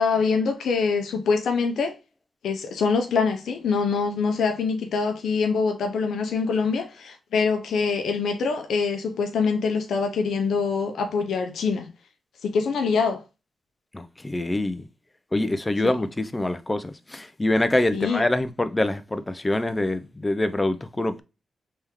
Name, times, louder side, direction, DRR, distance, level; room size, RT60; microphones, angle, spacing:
voice 1, 0.0-2.0 2.4-11.9 12.4-13.2 15.8-15.9 17.9-18.2, left 5 dB, 85° left, 0.6 m, -24 dB
voice 2, 13.9-14.9 15.3-21.2, left 1 dB, 20° left, 0.5 m, -25 dB
3.5 x 3.4 x 3.0 m
cardioid pair, 75°, 0 cm